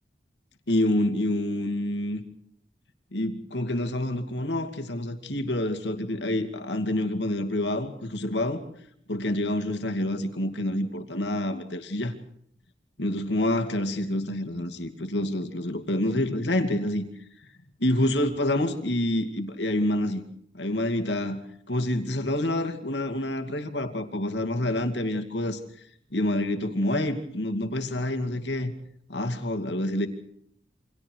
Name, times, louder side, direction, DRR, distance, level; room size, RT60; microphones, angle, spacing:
voice 1, 0.7-2.2 3.1-8.6 9.1-12.1 13.0-17.1 17.8-20.2 20.5-21.4 21.7-25.6 26.1-28.7 29.1-30.1, left 1 dB, 80° left, 5 dB, 2.5 m, -27 dB
29.0 x 25.5 x 4.7 m, 0.67 s
head